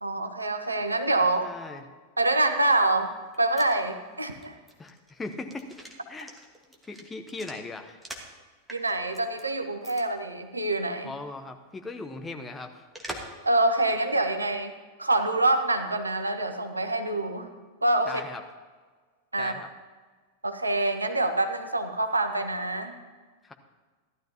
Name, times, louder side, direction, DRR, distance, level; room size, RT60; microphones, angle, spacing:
voice 1, 0.0-1.5 2.2-3.1 3.4-4.6 8.7-11.1 13.4-17.5 17.8-18.2 19.3-19.5 20.4-22.9, right 2 dB, 80° right, 7 dB, 0.9 m, -26 dB
voice 2, 1.4-1.8 4.8-5.7 6.1-6.3 6.9-8.0 11.0-12.9 18.1-18.4 19.4-19.7 23.4-23.5, left 3 dB, 15° left, 5 dB, 1.0 m, -38 dB
sound 1, 3.1-8.4 8.7-9.4 9.8-10.0 10.3-10.4 12.9-13.4 13.8-13.9, right 1 dB, 5° right, 1.5 m, -44 dB
15.5 x 12.0 x 2.9 m, 1.4 s
figure-of-eight pair, 90°, 0 cm